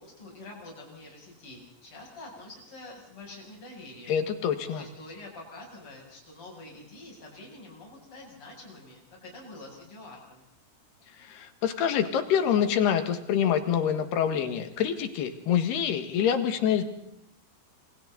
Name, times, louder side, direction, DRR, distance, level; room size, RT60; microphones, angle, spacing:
voice 1, 0.0-4.2 4.6-10.4, left 2 dB, 30° left, -2 dB, 8.8 m, -46 dB
voice 2, 4.1-4.8 11.3-16.8, left 8 dB, 75° left, 8 dB, 3.9 m, -26 dB
27.5 x 26.5 x 4.1 m, 0.79 s
omnidirectional pair, 4.8 m